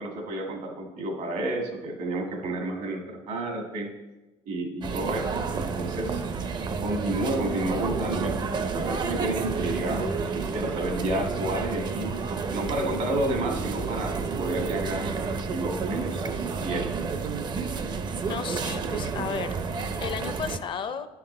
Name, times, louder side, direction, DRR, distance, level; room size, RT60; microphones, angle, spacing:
voice 1, 0.0-3.9 4.4-6.2 6.8-16.9, right 1 dB, 80° right, 2 dB, 1.7 m, -31 dB
sound 1, 4.8-20.6, right 5 dB, 35° right, 0.5 m, -30 dB
voice 2, 18.3-19.6 20.0-21.1, left 7 dB, 40° left, 11 dB, 0.5 m, -33 dB
10.0 x 5.8 x 3.2 m, 1.1 s
cardioid pair, 120°, 12 cm